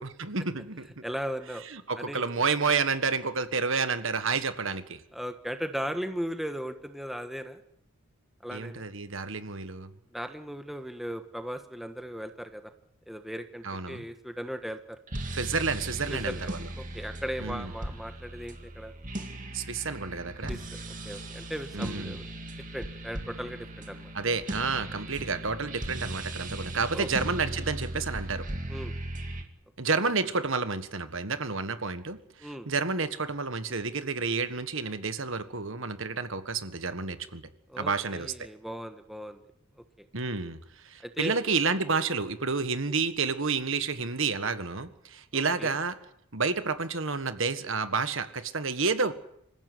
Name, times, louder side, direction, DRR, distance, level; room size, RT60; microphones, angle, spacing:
voice 1, 0.0-1.0 1.6-5.0 8.5-9.9 13.6-14.0 15.3-16.7 17.4-17.7 19.5-20.6 21.7-22.2 24.1-28.5 29.8-37.4 37.8-38.5 40.1-40.6 40.8-45.9 46.3-49.1, right 4 dB, 60° right, 11 dB, 1.6 m, -30 dB
voice 2, 1.0-1.6 2.0-2.3 5.1-7.6 8.4-8.8 10.1-12.7 13.1-15.0 16.1-16.5 16.8-18.9 20.5-20.8 21.0-22.3 22.7-24.1 26.9-27.1 28.7-28.9 32.4-32.7 37.7-39.4 40.0-40.1 41.0-41.4 45.3-45.7, equal, ahead, 7 dB, 1.4 m, -37 dB
sound 1, 15.1-29.4, right 1 dB, 35° right, 2.6 m, -38 dB
26.0 x 15.0 x 9.4 m, 0.74 s
head